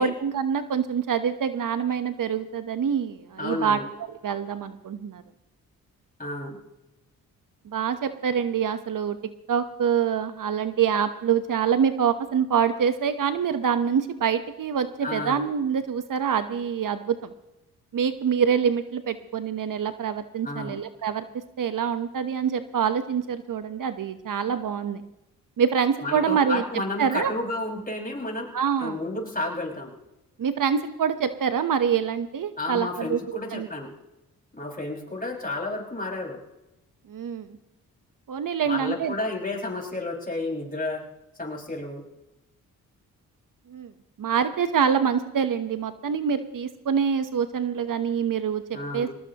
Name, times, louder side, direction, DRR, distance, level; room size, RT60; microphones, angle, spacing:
voice 1, 0.0-3.8 4.2-5.2 7.6-9.2 9.5-17.3 17.9-21.3 21.6-25.0 25.6-26.6 27.0-27.3 28.5-29.0 30.4-33.2 33.5-33.7 37.1-37.6 38.3-39.1 43.7-43.9 44.2-48.6 48.9-49.1, right 7 dB, 60° right, 10 dB, 1.1 m, -25 dB
voice 2, 3.4-3.9 6.2-6.6 15.0-15.4 20.4-20.8 26.0-28.5 28.8-29.9 32.6-33.9 34.5-36.4 38.6-41.0 41.3-42.0 48.7-49.2, left 2 dB, 25° left, -1 dB, 5.7 m, -31 dB
21.5 x 19.0 x 3.0 m, 0.95 s
supercardioid pair, 50°, 37 cm